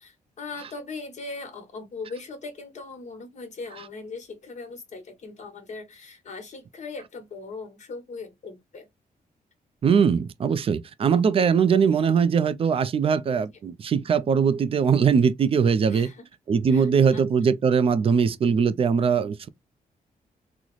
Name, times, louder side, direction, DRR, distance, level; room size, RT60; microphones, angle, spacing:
voice 1, 0.0-8.9 15.9-16.2 16.7-17.2, left 3 dB, 50° left, 1.2 m, -39 dB
voice 2, 9.8-16.1 16.5-19.5, right 6 dB, 40° right, 0.4 m, -21 dB
3.9 x 2.0 x 3.0 m
wide cardioid pair, 130°, 15 cm